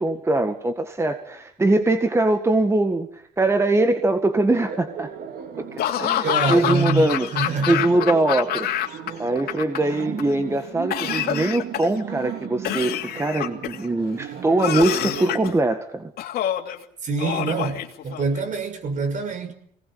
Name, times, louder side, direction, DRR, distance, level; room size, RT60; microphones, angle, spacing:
voice 1, 0.0-5.1 5.6-7.3 7.7-8.7 9.2-16.1, right 2 dB, 15° right, 1.9 m, -22 dB
Laughter, 4.5-15.4, right 8 dB, 65° right, 3.9 m, -36 dB
Laughter / Cough, 5.8-9.1 9.4-10.2 10.9-12.0 12.6-13.8 14.6-15.5 16.2-16.8 17.2-18.4, left 11 dB, 70° left, 2.8 m, -26 dB
voice 2, 6.2-7.9 17.0-19.5, right 3 dB, 50° right, 5.9 m, -25 dB
25.0 x 19.0 x 8.8 m
cardioid pair, 110°, 17 cm